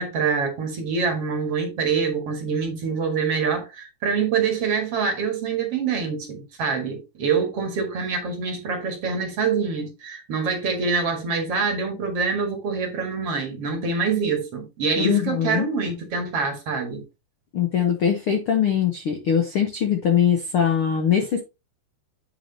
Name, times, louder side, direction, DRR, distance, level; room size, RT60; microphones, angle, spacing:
voice 1, 0.0-17.0, right 5 dB, 50° right, 2.5 m, -25 dB
voice 2, 15.0-15.7 17.5-21.4, left 8 dB, 65° left, 1.4 m, -22 dB
8.7 x 6.4 x 2.8 m
omnidirectional pair, 4.0 m